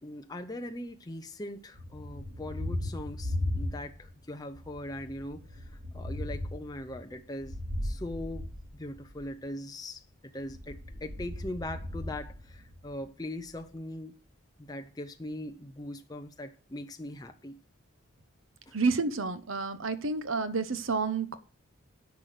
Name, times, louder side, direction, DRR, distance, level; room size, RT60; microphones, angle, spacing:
voice 1, 0.0-10.0 10.3-14.2 14.6-17.6 18.7-18.8, left 1 dB, 20° left, 0.7 m, -40 dB
Thunder, 1.7-4.2 4.5-9.3 10.4-13.0, left 1 dB, 55° right, 4.0 m, -37 dB
voice 2, 18.7-21.4, right 4 dB, 80° right, 1.0 m, -29 dB
10.5 x 6.0 x 6.5 m
head